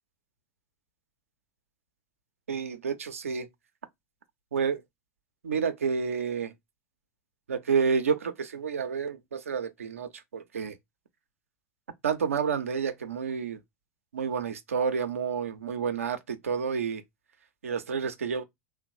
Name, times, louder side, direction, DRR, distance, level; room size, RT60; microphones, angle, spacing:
voice 1, 2.5-3.5 4.5-4.8 5.4-6.5 7.5-10.7 12.0-13.6 14.1-17.0 17.6-18.4, right 6 dB, 85° right, 0.5 m, -29 dB
3.0 x 2.1 x 2.5 m
hypercardioid pair, 90°, 7 cm